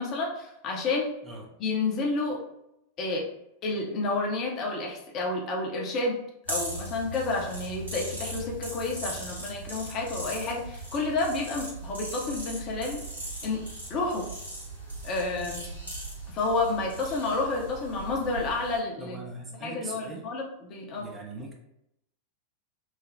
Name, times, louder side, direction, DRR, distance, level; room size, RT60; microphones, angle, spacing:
voice 1, 0.0-1.1 1.6-2.4 3.0-3.2 3.6-6.2 6.5-13.0 13.4-13.6 13.9-14.3 15.0-15.7 16.3-19.2 19.6-21.1, left 3 dB, 35° left, -1 dB, 0.6 m, -30 dB
sound 1, 6.5-18.8, right 1 dB, 80° right, 1.4 m, -39 dB
voice 2, 19.0-20.3 21.0-21.5, right 2 dB, 20° right, 0 dB, 0.5 m, -41 dB
3.1 x 2.0 x 2.6 m, 0.81 s
figure-of-eight pair, 90°, 0 cm